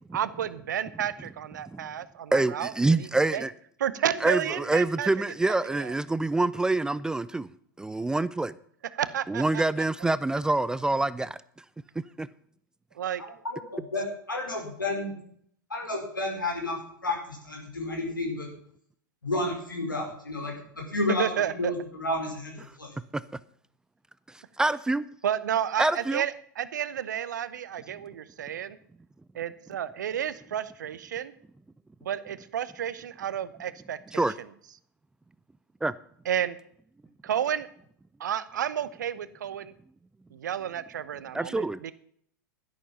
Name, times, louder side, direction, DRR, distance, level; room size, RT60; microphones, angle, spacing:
voice 1, 0.1-3.1 3.3-3.4 3.8-5.1 5.7-5.9 8.9-9.6 13.0-13.2 21.2-21.7 25.2-28.8 29.3-31.3 32.0-34.2 36.3-36.6 37.2-37.7 38.2-39.7 40.3-41.9, right 9 dB, 65° right, 1.0 m, -31 dB
voice 2, 2.3-3.5 4.2-7.5 7.8-8.5 9.3-11.4 12.0-12.3 23.1-23.2 24.3-25.0 25.8-26.2 34.1-34.3 35.8-35.9 41.3-41.8, right 2 dB, 5° right, 0.4 m, -26 dB
voice 3, 13.4-15.1 15.7-16.8 17.0-18.5 19.2-20.5 20.9-22.9, left 2 dB, 80° left, 5.1 m, -31 dB
12.0 x 11.0 x 5.6 m
figure-of-eight pair, 90°, 11 cm